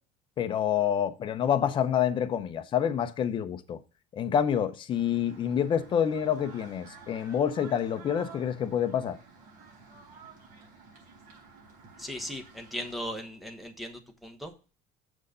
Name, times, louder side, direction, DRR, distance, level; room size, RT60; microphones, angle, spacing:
voice 1, 0.4-3.8 4.1-9.2, left 9 dB, 25° left, 0.6 m, -27 dB
sound 1, 4.9-12.9, right 5 dB, 50° right, 4.0 m, -52 dB
voice 2, 12.0-14.7, equal, ahead, 0.9 m, -38 dB
6.5 x 6.1 x 5.5 m
cardioid pair, 165°, 18 cm